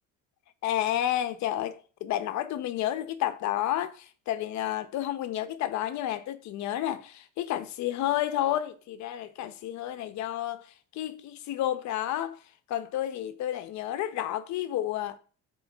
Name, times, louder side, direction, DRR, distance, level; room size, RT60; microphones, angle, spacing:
voice 1, 0.6-12.4 12.7-15.2, left 12 dB, 60° left, 1.0 m, -31 dB
13.0 x 4.9 x 3.6 m
cardioid pair, 175°, 32 cm